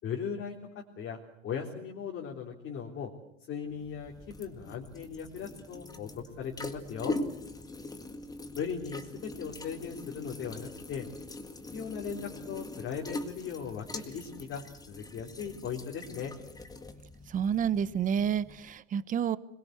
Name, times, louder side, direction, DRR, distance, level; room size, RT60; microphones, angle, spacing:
voice 1, 0.0-3.1 3.5-7.2 8.5-11.1 11.7-16.3, left 7 dB, 30° left, 0 dB, 3.5 m, -38 dB
sound 1, 3.7-18.7, left 2 dB, 10° left, 1.8 m, -42 dB
voice 2, 17.3-19.4, right 8 dB, 20° right, 16 dB, 0.9 m, -29 dB
26.5 x 22.0 x 8.0 m, 0.77 s
supercardioid pair, 150°, 37 cm